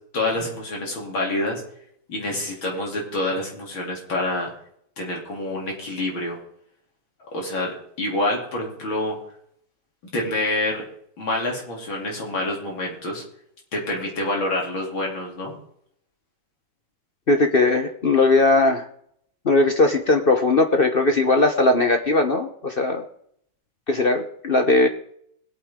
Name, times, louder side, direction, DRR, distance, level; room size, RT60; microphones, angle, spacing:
voice 1, 0.1-1.6 2.1-4.5 5.0-6.4 7.3-9.2 10.1-10.9 11.2-13.2 13.7-15.5, left 1 dB, 80° left, -1 dB, 3.8 m, -27 dB
voice 2, 17.3-18.8 19.4-23.0 23.9-24.9, left 2 dB, 45° left, 5 dB, 0.7 m, -19 dB
20.5 x 8.8 x 3.7 m, 0.69 s
omnidirectional pair, 2.2 m